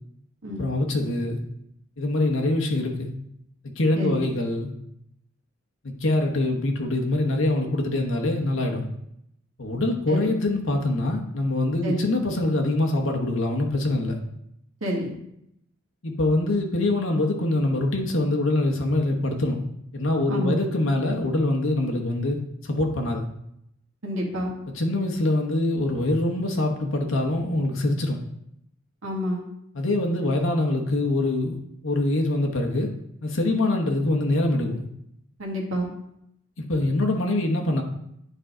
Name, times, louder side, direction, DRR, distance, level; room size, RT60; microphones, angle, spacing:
voice 1, 0.6-1.4 2.0-3.1 3.8-4.7 5.8-8.9 9.6-14.2 16.0-19.6 19.9-22.4 22.6-23.2 24.7-28.2 29.7-32.9 33.2-34.8 36.6-37.8, left 2 dB, 70° left, 1 dB, 1.1 m, -24 dB
voice 2, 14.8-15.2 20.3-20.6 24.0-24.6 29.0-29.4 35.4-35.9, equal, 80° right, -1 dB, 1.8 m, -28 dB
9.7 x 4.5 x 3.8 m, 0.76 s
head